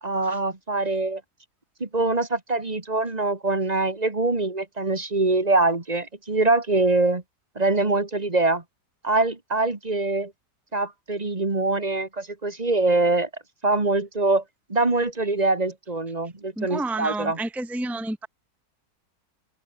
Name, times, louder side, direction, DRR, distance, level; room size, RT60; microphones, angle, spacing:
voice 1, 0.0-1.2 1.8-7.2 7.6-8.6 9.0-10.3 10.7-13.3 13.6-14.4 14.7-17.4, right 2 dB, 25° right, 2.1 m, -23 dB
voice 2, 16.6-18.3, right 2 dB, ahead, 0.3 m, -30 dB
omnidirectional pair, 1.7 m